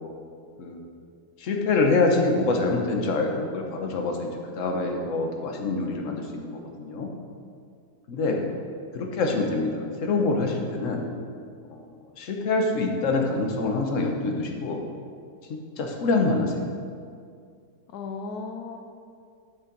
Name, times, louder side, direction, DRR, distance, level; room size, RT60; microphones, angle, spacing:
voice 1, 1.4-7.1 8.1-8.4 8.9-11.1 11.7-11.9 12.2-14.8 15.5-16.5, left 3 dB, 50° left, 2 dB, 1.3 m, -25 dB
voice 2, 8.3-8.7 17.9-18.8, left 4 dB, 70° left, 3 dB, 1.1 m, -36 dB
11.5 x 6.5 x 4.6 m, 2.2 s
omnidirectional pair, 1.9 m